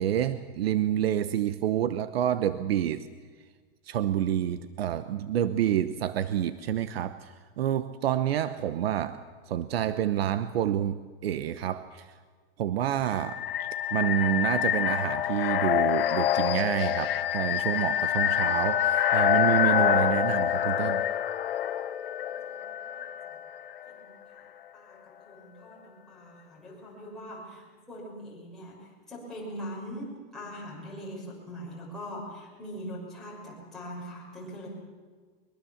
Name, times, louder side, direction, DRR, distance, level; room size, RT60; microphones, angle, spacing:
voice 1, 0.0-3.1 3.8-12.2 12.6-21.0, right 11 dB, 80° right, 13 dB, 1.0 m, -28 dB
sound 1, 13.1-23.9, left 11 dB, 70° left, 1.1 m, -26 dB
voice 2, 22.2-23.4 23.9-24.4 24.7-34.7, equal, ahead, -7 dB, 6.2 m, -42 dB
22.5 x 22.5 x 7.3 m, 1.5 s
supercardioid pair, 175°, 30 cm